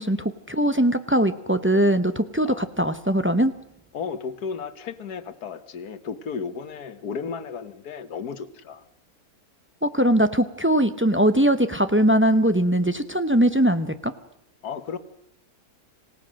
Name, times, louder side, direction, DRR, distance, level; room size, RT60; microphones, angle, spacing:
voice 1, 0.0-3.5 9.8-14.1, right 1 dB, 15° right, 10 dB, 0.4 m, -21 dB
voice 2, 3.9-8.8 14.6-15.0, left 6 dB, 80° left, 11 dB, 1.7 m, -34 dB
26.5 x 17.0 x 6.4 m, 0.78 s
omnidirectional pair, 1.6 m